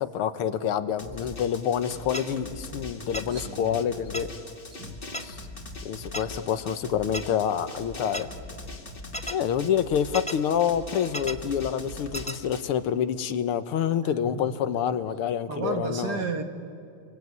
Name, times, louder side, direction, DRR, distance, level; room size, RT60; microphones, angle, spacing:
voice 1, 0.0-4.3 5.2-5.4 5.8-8.3 9.3-16.3, left 8 dB, 85° left, 11 dB, 1.9 m, -27 dB
Drum, 1.0-12.6, left 2 dB, 25° left, 1.9 m, -41 dB
sound 1, 2.1-2.2 3.1-3.2 4.1-4.2 5.1-5.2 6.1-6.2 7.1-7.2 8.1-8.2 9.1-9.3 10.1-10.4 11.1-11.3 12.1-12.4, equal, 10° left, 0.4 m, -32 dB
voice 2, 3.3-3.8 4.7-5.0 14.0-14.5 15.5-16.4, right 5 dB, 50° right, 6 dB, 2.0 m, -33 dB
28.0 x 22.5 x 9.5 m, 2.5 s
omnidirectional pair, 2.4 m